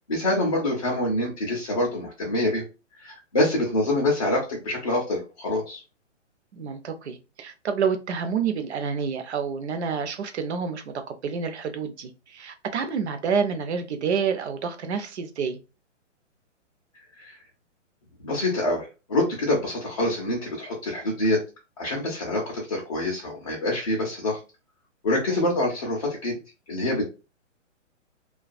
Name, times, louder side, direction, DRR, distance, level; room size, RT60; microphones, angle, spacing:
voice 1, 0.1-2.6 3.0-5.8 17.2-17.4 18.2-21.4 21.8-24.4 25.0-26.4 26.7-27.0, left 1 dB, 30° left, 0.4 m, -26 dB
voice 2, 6.5-15.6 25.3-25.5, right 6 dB, 60° right, 0.6 m, -28 dB
2.3 x 2.2 x 2.5 m
hypercardioid pair, 160°, 38 cm